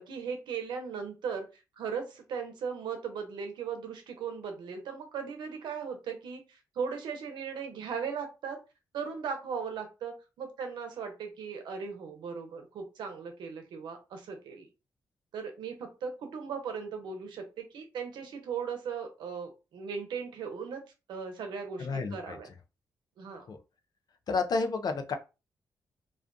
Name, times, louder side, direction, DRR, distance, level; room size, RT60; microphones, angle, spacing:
voice 1, 0.0-1.5 1.8-8.6 8.9-14.7 15.3-20.8 21.1-22.5 23.2-23.5, right 6 dB, 85° right, 0.7 m, -38 dB
voice 2, 21.8-22.4 23.5-23.6 24.3-25.2, left 4 dB, 60° left, 0.5 m, -30 dB
2.3 x 2.2 x 2.5 m
cardioid pair, 60°, 8 cm